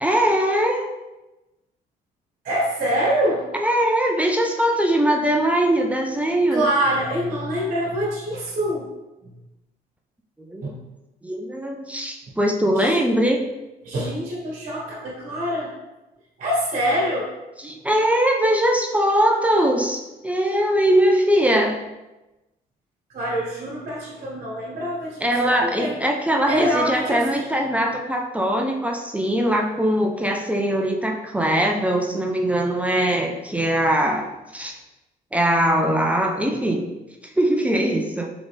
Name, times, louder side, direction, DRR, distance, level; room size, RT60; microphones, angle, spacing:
voice 1, 0.0-0.9 3.5-6.6 10.4-10.7 11.2-13.4 17.6-21.8 25.2-34.7 35.3-36.9 37.4-38.3, right 1 dB, 10° right, 1 dB, 0.4 m, -21 dB
voice 2, 2.4-3.4 6.5-8.9 9.2-9.3 10.6-10.8 12.8-13.0 13.8-15.7 16.4-17.3 23.1-26.0 26.5-27.5, equal, 50° right, -5 dB, 1.4 m, -25 dB
3.9 x 3.6 x 3.4 m, 1.0 s
cardioid pair, 110°, 17 cm